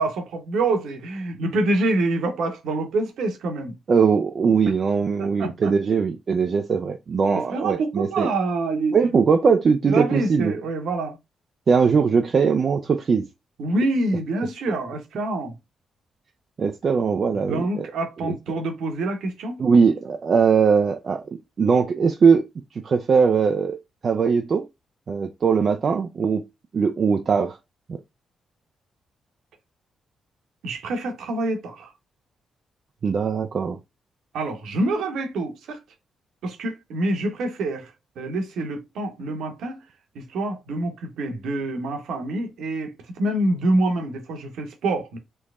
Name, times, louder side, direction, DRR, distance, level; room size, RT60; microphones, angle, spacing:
voice 1, 0.0-3.7 5.2-5.7 7.3-9.0 9.9-11.2 13.6-15.5 17.5-19.6 30.6-31.9 34.3-35.8 36.4-39.8 40.1-45.2, right 2 dB, 70° right, 0.9 m, -26 dB
voice 2, 3.9-8.3 8.9-10.5 11.7-13.3 16.6-17.9 18.2-18.3 19.6-21.2 21.6-22.4 22.7-23.8 24.0-24.7 25.1-26.4 26.7-27.6 27.9-28.0 33.0-33.8, right 5 dB, 50° right, 0.4 m, -20 dB
3.3 x 3.1 x 2.4 m
hypercardioid pair, 40°, 0 cm